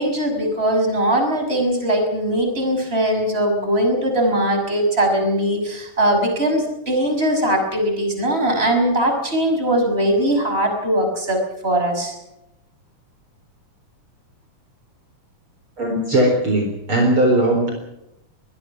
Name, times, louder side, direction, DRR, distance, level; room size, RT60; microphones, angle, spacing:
voice 1, 0.0-12.1, right 1 dB, 20° right, 4 dB, 6.1 m, -20 dB
voice 2, 15.8-17.7, right 1 dB, 40° right, 2 dB, 4.8 m, -18 dB
23.5 x 20.5 x 6.1 m, 0.86 s
omnidirectional pair, 3.6 m